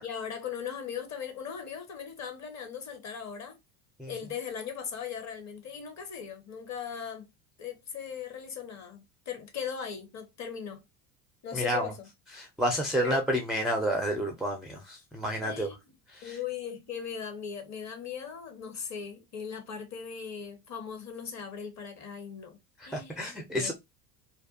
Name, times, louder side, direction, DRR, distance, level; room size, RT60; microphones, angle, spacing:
voice 1, 0.0-3.6 4.1-7.3 7.6-10.8 11.4-12.1 13.0-13.2 15.4-15.8 16.2-22.6 22.8-23.7, left 7 dB, 35° left, 0.9 m, -39 dB
voice 2, 11.5-11.9 12.4-15.7 16.1-16.4 22.8-23.7, equal, ahead, 0.4 m, -30 dB
2.5 x 2.2 x 2.5 m
hypercardioid pair, 80°, 46 cm